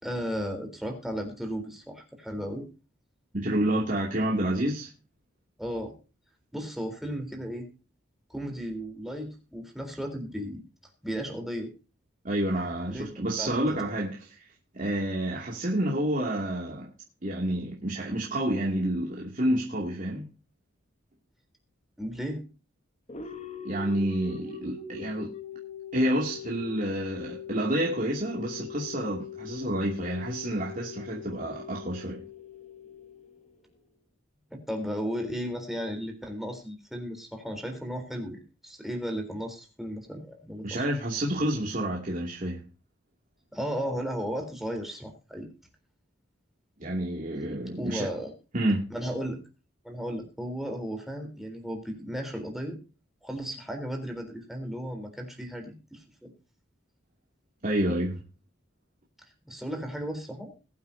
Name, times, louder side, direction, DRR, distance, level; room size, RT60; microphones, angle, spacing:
voice 1, 0.0-2.7 5.6-5.9 6.5-7.7 8.3-10.6 11.0-11.7 12.9-13.8 22.0-22.4 34.7-40.9 43.5-45.5 47.7-48.3 48.9-49.4 49.8-52.8 53.2-56.3 59.5-60.5, equal, ahead, 3.8 m, -35 dB
voice 2, 3.3-4.9 12.2-14.4 14.7-16.9 17.2-20.3 23.6-25.3 25.9-32.2 40.6-42.7 46.8-48.1 48.5-48.9 57.6-58.2, right 1 dB, 40° right, 2.6 m, -29 dB
sound 1, 23.1-33.8, left 6 dB, 35° left, 1.4 m, -42 dB
21.5 x 8.7 x 2.8 m
head